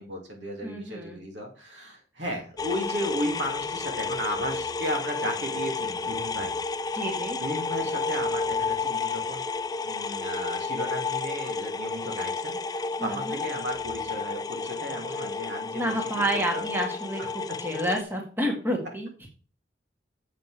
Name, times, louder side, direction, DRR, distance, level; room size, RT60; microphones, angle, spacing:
voice 1, 0.0-6.5 7.4-9.4 9.8-15.9 16.3-16.6 17.2-17.6, equal, 80° right, 1 dB, 2.5 m, -34 dB
voice 2, 0.6-1.2 6.9-7.4 13.0-13.4 15.7-19.1, equal, 10° right, 1 dB, 1.6 m, -29 dB
sound 1, 2.6-18.0, left 4 dB, 20° left, 0.3 m, -31 dB
7.4 x 5.9 x 4.9 m, 0.38 s
head